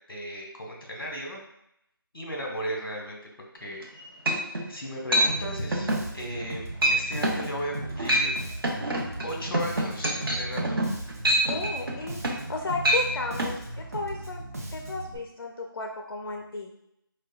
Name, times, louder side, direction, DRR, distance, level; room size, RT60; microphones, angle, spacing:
voice 1, 0.1-1.4 2.1-3.2 3.6-3.8 4.7-8.3 9.2-10.8, equal, 65° left, 0 dB, 1.0 m, -35 dB
sound 1, 3.8-3.9 4.3-4.7 5.1-5.3 5.7-6.0 6.4-6.5 6.8-7.0 7.2-7.5 7.9-8.3 8.6-12.5 12.8-13.0 13.4-13.5, right 1 dB, 70° right, 0.8 m, -25 dB
Bass guitar, 5.3-15.2, right 1 dB, 40° right, 0.6 m, -37 dB
voice 2, 11.5-12.2 12.5-14.4 14.7-16.7, left 3 dB, 85° left, 2 dB, 0.5 m, -34 dB
4.7 x 2.2 x 2.2 m, 0.78 s
figure-of-eight pair, 170°, 12 cm